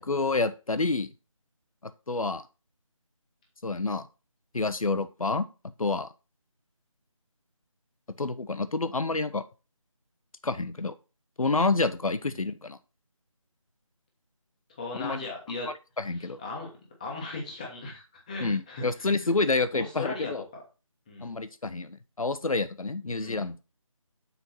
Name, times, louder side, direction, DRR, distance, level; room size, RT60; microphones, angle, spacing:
voice 1, 0.0-1.1 2.1-2.4 3.6-4.1 4.5-5.5 5.8-6.1 8.2-9.4 10.4-10.9 11.4-12.8 14.9-15.2 16.0-16.4 18.4-20.4 21.2-23.6, left 3 dB, 80° left, 12 dB, 0.8 m, -28 dB
voice 2, 14.8-15.7 16.2-19.3 19.7-20.6 21.1-21.3 23.2-23.4, left 3 dB, 15° left, 0 dB, 1.1 m, -38 dB
6.9 x 4.6 x 4.2 m, 0.31 s
figure-of-eight pair, 165°, 18 cm